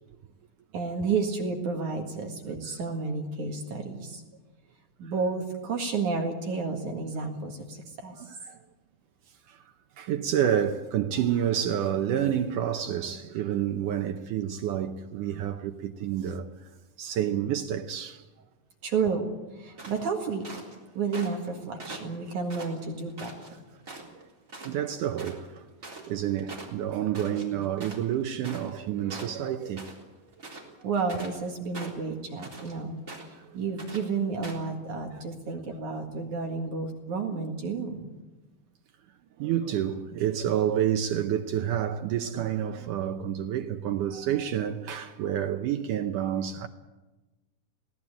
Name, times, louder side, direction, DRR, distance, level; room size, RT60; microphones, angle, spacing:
voice 1, 0.7-4.2 5.0-8.2 18.8-19.3 19.5-20.5 20.9-23.3 30.5-33.0 33.5-38.1, right 4 dB, 55° right, 2.9 m, -31 dB
voice 2, 8.2-8.6 9.5-9.6 10.0-16.7 17.0-18.2 24.7-30.0 33.5-33.6 37.3-37.4 39.4-46.7, right 10 dB, 80° right, 1.8 m, -29 dB
sound 1, 19.8-20.8 21.1-21.5 21.8-23.5 23.8-24.2 24.5-24.7 25.0-28.8 29.1-30.0 30.3-31.4 31.7-32.7 33.1-33.4 33.8-34.0 34.4-34.7, right 2 dB, 20° right, 3.6 m, -42 dB
21.0 x 17.5 x 8.7 m
omnidirectional pair, 4.8 m